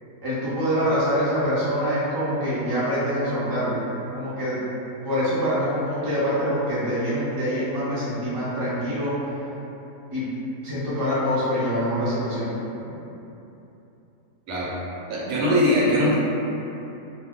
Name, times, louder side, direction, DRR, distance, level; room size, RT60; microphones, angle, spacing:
voice 1, 0.2-3.8 4.1-4.6 5.0-9.1 10.1-10.3 10.6-12.5, equal, 30° right, -11 dB, 0.4 m, -25 dB
voice 2, 15.1-16.1, equal, 70° right, -6 dB, 1.0 m, -21 dB
2.7 x 2.1 x 3.6 m, 3.0 s
omnidirectional pair, 1.7 m